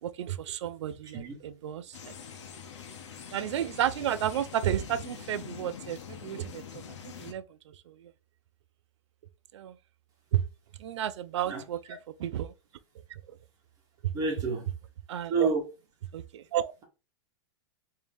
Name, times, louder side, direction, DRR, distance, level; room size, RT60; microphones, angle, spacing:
voice 1, 0.0-2.1 3.3-6.8 7.2-8.1 9.5-9.8 10.3-10.4 10.8-12.5 13.1-13.4 14.0-14.1 15.1-15.5 16.1-16.7, right 11 dB, 85° right, 0.4 m, -32 dB
sound 1, 1.9-7.3, left 7 dB, 85° left, 0.8 m, -44 dB
voice 2, 14.1-14.6 15.3-15.6, right 4 dB, 25° right, 1.1 m, -28 dB
3.5 x 2.8 x 3.4 m
supercardioid pair, 150°, 15 cm